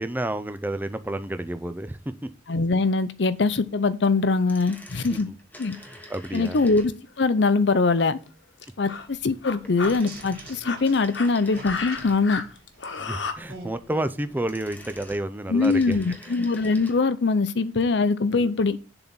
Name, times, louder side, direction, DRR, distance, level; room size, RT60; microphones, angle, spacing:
voice 1, 0.0-2.0 4.9-5.2 5.7-6.6 13.0-16.0 18.4-18.5, right 1 dB, 10° right, 0.5 m, -30 dB
voice 2, 2.5-5.3 5.6-5.8 6.3-6.9 7.2-8.2 8.8-12.4 15.5-18.8, left 3 dB, 65° left, 0.6 m, -22 dB
sound 1, 4.3-7.2 9.6-12.5 14.2-17.0 17.3-17.4, left 1 dB, 10° left, 1.1 m, -47 dB
sound 2, 7.1-7.3 8.2-8.3 8.6-9.1 9.4-9.9 10.5-13.3, left 5 dB, 90° left, 1.0 m, -32 dB
sound 3, 8.8-15.2, right 2 dB, 55° right, 2.1 m, -46 dB
7.1 x 4.0 x 6.0 m
head